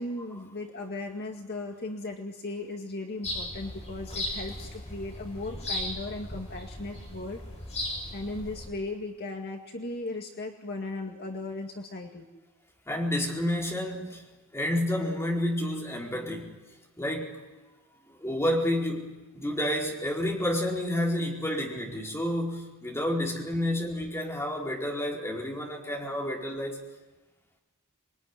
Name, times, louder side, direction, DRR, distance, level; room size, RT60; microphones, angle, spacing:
voice 1, 0.0-7.4 8.1-12.3 23.5-23.9, left 2 dB, 50° left, 2 dB, 2.1 m, -37 dB
sound 1, 3.2-8.7, left 1 dB, 30° left, 7.4 m, -37 dB
voice 2, 12.9-14.3 14.5-16.6 17.0-17.4 18.1-26.8, left 1 dB, 10° left, -1 dB, 4.6 m, -30 dB
27.0 x 22.0 x 9.9 m, 1.2 s
head